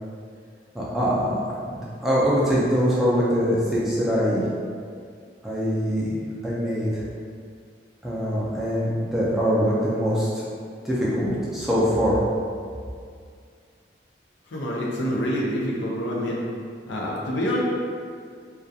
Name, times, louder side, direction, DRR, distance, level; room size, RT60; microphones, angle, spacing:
voice 1, 0.7-4.4 5.4-6.1 6.4-7.0 8.0-10.4 10.8-12.2, equal, ahead, -8 dB, 0.3 m, -23 dB
voice 2, 14.5-16.4 16.9-17.6, equal, 80° left, -4 dB, 0.5 m, -26 dB
2.2 x 2.2 x 2.6 m, 2.2 s
head